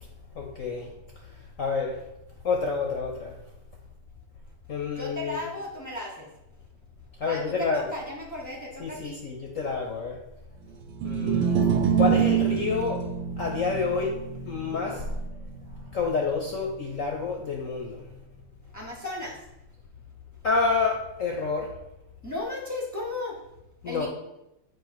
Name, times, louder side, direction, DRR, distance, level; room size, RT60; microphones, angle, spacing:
voice 1, 0.4-0.9 1.6-2.0 2.4-3.3 4.7-5.4 7.2-7.9 8.8-10.2 11.0-11.7 12.0-13.0 13.4-15.1 15.9-18.0 20.4-21.7 23.8-24.1, left 4 dB, 70° left, 1 dB, 0.7 m, -28 dB
voice 2, 4.9-6.3 7.3-9.2 18.7-19.5 22.2-23.4 23.8-24.1, left 2 dB, 30° left, -3 dB, 0.3 m, -35 dB
sound 1, 10.9-17.3, right 8 dB, 75° right, 1.3 m, -27 dB
7.8 x 2.7 x 5.8 m, 0.88 s
omnidirectional pair, 2.4 m